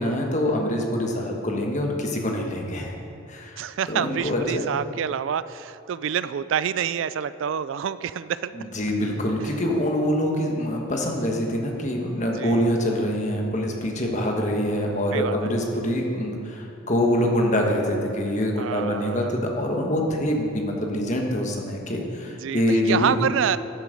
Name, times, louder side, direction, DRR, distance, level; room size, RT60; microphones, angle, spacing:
voice 1, 0.0-2.9 3.3-3.6 3.9-4.7 8.5-23.2, equal, 35° left, 1 dB, 1.4 m, -25 dB
voice 2, 3.6-8.5 12.3-12.6 15.1-15.5 18.6-19.3 22.4-23.6, right 8 dB, 65° right, 15 dB, 0.3 m, -27 dB
13.5 x 8.2 x 5.2 m, 2.6 s
head